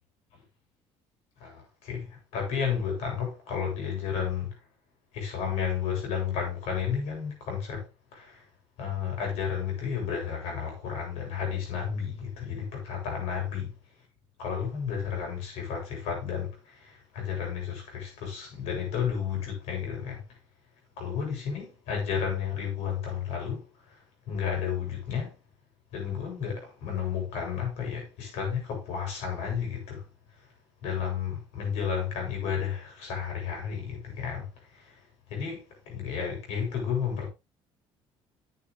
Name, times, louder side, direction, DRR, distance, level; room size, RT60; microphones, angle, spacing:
voice 1, 1.4-4.5 5.1-7.9 8.1-8.4 8.8-13.7 14.4-20.2 21.0-23.6 24.3-25.3 25.9-30.0 30.8-34.5 34.7-34.9 35.3-37.3, left 7 dB, 80° left, 7.4 m, -32 dB
11.0 x 8.6 x 3.3 m
cardioid pair, 135°, 11 cm